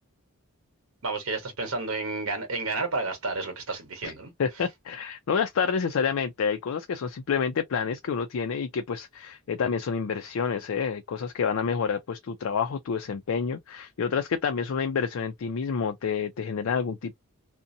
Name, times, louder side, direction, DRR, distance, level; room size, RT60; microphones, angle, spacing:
voice 1, 1.0-4.3, right 3 dB, 65° right, 1.1 m, -31 dB
voice 2, 4.4-17.2, left 6 dB, 70° left, 0.4 m, -28 dB
2.6 x 2.1 x 2.6 m
head